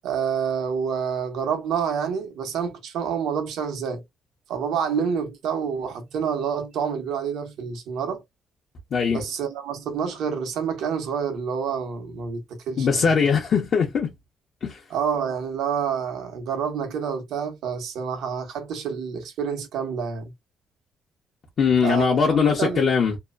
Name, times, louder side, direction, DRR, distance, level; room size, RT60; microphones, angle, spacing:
voice 1, 0.0-4.0 4.5-8.2 9.1-13.1 14.9-20.3 21.8-22.8, right 7 dB, 85° right, 0.9 m, -28 dB
voice 2, 8.9-9.2 12.8-14.1 14.6-14.8 21.6-23.2, left 6 dB, 55° left, 0.8 m, -21 dB
2.9 x 2.1 x 2.4 m
cardioid pair, 90°, 0 cm